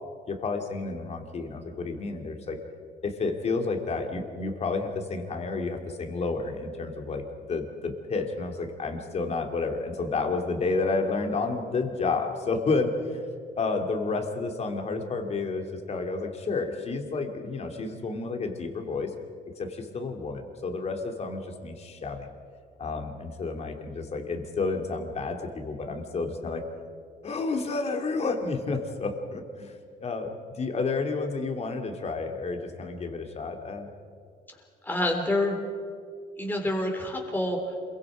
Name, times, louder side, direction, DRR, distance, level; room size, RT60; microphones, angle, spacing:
voice 1, 0.3-2.6 3.0-13.2 13.6-19.1 19.6-22.3 22.8-26.6 27.2-33.9, left 3 dB, 40° left, 4 dB, 2.8 m, -30 dB
voice 2, 34.8-35.6 36.4-37.8, left 1 dB, 10° left, 1 dB, 3.7 m, -27 dB
27.0 x 23.0 x 5.1 m, 2.2 s
cardioid pair, 110°, 17 cm